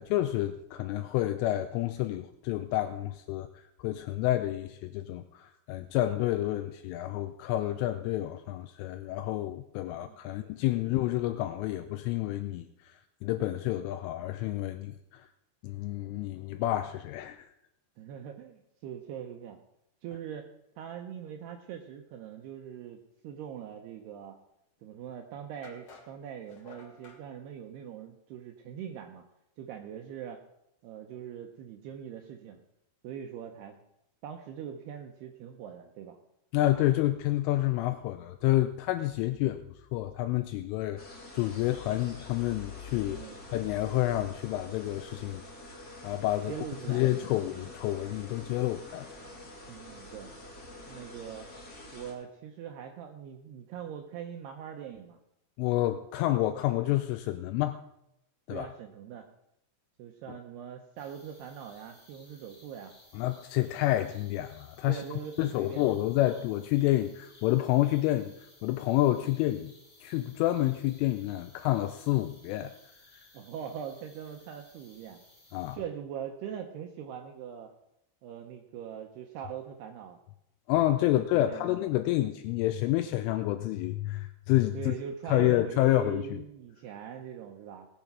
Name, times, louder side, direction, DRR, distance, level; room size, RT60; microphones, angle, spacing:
voice 1, 0.0-3.5 3.8-12.7 13.2-15.2 15.6-17.5 36.5-39.6 39.9-41.0 41.3-43.2 43.5-45.4 45.7-46.5 46.9-49.1 55.6-57.8 58.5-58.7 60.3-60.4 63.1-65.0 65.4-68.3 68.6-69.7 70.0-72.7 75.5-75.8 80.7-84.9 85.3-86.4, left 15 dB, 85° left, 8 dB, 3.1 m, -29 dB
voice 2, 18.0-19.6 20.0-20.5 20.8-24.4 24.8-29.2 29.6-30.4 30.8-32.6 33.0-33.8 34.2-36.2 43.1-43.4 46.5-47.4 49.7-50.3 50.9-51.5 51.9-55.2 58.5-59.3 60.0-62.9 64.9-65.9 73.3-75.2 75.7-77.7 78.2-80.2 81.1-81.8 84.7-87.9, right 9 dB, 80° right, 4 dB, 2.3 m, -42 dB
sound 1, 24.8-24.9 25.6-27.2, left 4 dB, 55° left, 1.7 m, -53 dB
sound 2, 41.0-52.1, left 1 dB, 40° left, 1.0 m, -47 dB
sound 3, 61.0-75.8, left 1 dB, 20° left, 2.3 m, -59 dB
18.5 x 6.9 x 6.1 m, 0.80 s
omnidirectional pair, 5.8 m